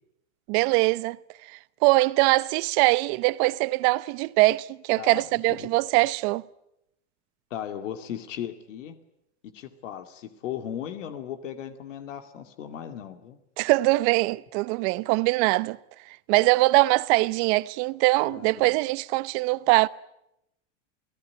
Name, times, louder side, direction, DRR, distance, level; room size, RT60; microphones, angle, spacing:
voice 1, 0.5-1.2 1.5-6.4 13.6-15.8 16.3-19.9, right 22 dB, 60° right, 1.0 m, -22 dB
voice 2, 7.5-9.0 9.5-13.4 18.3-18.8, left 10 dB, 85° left, 2.5 m, -37 dB
29.5 x 17.5 x 9.7 m
supercardioid pair, 110°, 36 cm